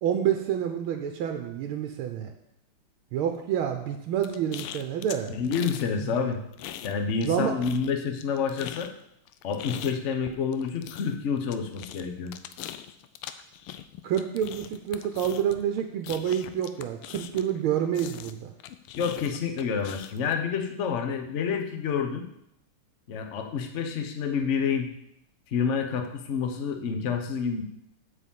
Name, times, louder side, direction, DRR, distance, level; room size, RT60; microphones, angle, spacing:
voice 1, 0.0-2.3 3.1-5.3 6.0-6.1 7.2-7.5 14.0-18.5, right 9 dB, 80° right, 5 dB, 1.5 m, -28 dB
sound 1, 4.2-5.9 6.2-7.3 7.6-17.6 17.9-20.3, left 11 dB, 85° left, 1.5 m, -41 dB
voice 2, 5.3-6.4 6.8-8.9 9.4-12.3 19.0-22.3 23.1-24.9 25.5-27.6, left 6 dB, 50° left, 5 dB, 0.9 m, -28 dB
8.3 x 5.0 x 7.5 m, 0.77 s
omnidirectional pair, 2.4 m